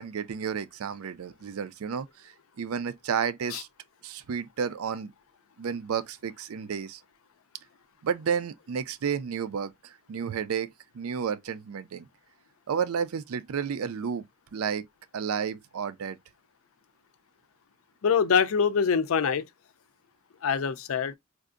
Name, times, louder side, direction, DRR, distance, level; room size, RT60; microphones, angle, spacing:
voice 1, 0.0-3.7 4.0-5.1 5.6-7.0 8.0-12.1 12.7-14.8 15.1-16.2, right 7 dB, 85° right, 0.4 m, -32 dB
voice 2, 18.0-19.4 20.4-21.1, left 6 dB, 70° left, 0.5 m, -24 dB
4.6 x 2.5 x 2.4 m
head